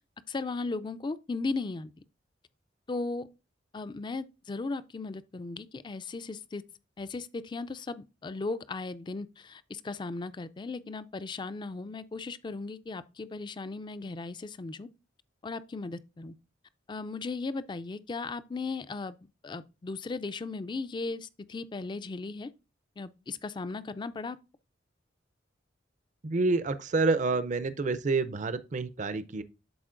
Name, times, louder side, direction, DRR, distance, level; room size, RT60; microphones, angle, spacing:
voice 1, 0.3-1.9 2.9-3.3 3.7-6.6 7.0-14.9 15.4-16.3 16.9-19.2 19.4-22.5 23.0-24.4, left 3 dB, 25° left, 0.3 m, -36 dB
voice 2, 26.2-29.4, right 3 dB, 40° right, 0.5 m, -28 dB
11.5 x 4.2 x 2.5 m
head